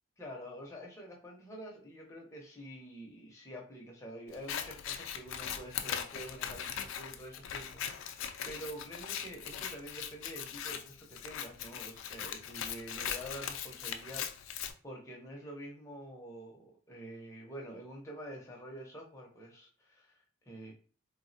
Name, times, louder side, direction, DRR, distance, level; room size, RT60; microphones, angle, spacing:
voice 1, 0.2-20.7, equal, 15° left, -1 dB, 0.6 m, -47 dB
Scissors, 4.3-14.7, left 9 dB, 80° left, 0.3 m, -40 dB
3.3 x 2.0 x 2.6 m, 0.41 s
head